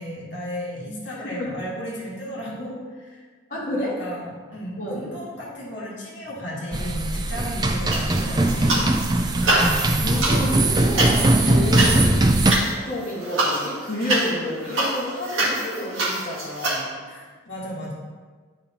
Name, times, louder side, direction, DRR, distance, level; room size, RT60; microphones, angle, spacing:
voice 1, 0.0-3.2 3.5-8.8 10.7-10.8 17.1-17.9, equal, 60° left, -5 dB, 1.6 m, -34 dB
voice 2, 1.2-1.6 3.5-4.0 4.8-5.1 10.0-12.4 12.8-16.9, left 1 dB, 40° left, -8 dB, 1.5 m, -30 dB
sound 1, 6.7-12.5, right 1 dB, 20° right, 0.3 m, -20 dB
sound 2, 7.9-9.1 9.3-16.8, right 1 dB, 75° right, 1.8 m, -25 dB
10.5 x 5.2 x 2.8 m, 1.5 s
head